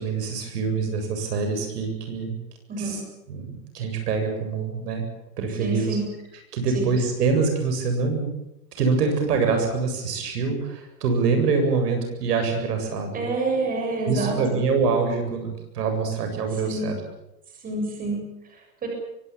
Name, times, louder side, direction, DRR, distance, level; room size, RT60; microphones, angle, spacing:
voice 1, 0.0-2.4 2.8-3.0 3.3-5.0 5.4-6.0 6.5-8.3 8.8-13.2 14.1-17.0, right 4 dB, 70° right, 5 dB, 8.0 m, -25 dB
voice 2, 2.7-3.0 5.6-6.1 6.7-6.9 13.1-14.4 16.5-17.0 17.6-18.9, right 2 dB, 15° right, 1 dB, 7.0 m, -28 dB
24.0 x 18.0 x 8.8 m, 0.86 s
supercardioid pair, 155°, 50 cm